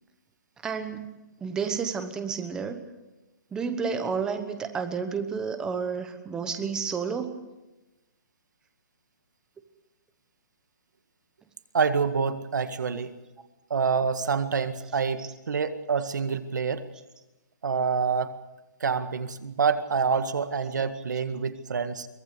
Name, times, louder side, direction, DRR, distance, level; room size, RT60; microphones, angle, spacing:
voice 1, 0.6-2.9 3.5-7.3, right 6 dB, 5° right, 8 dB, 1.1 m, -31 dB
voice 2, 11.7-13.1 13.7-16.8 17.6-18.3 18.8-22.1, right 5 dB, 75° right, 10 dB, 1.9 m, -27 dB
23.0 x 18.5 x 6.9 m, 1.0 s
hypercardioid pair, 170°, 10 cm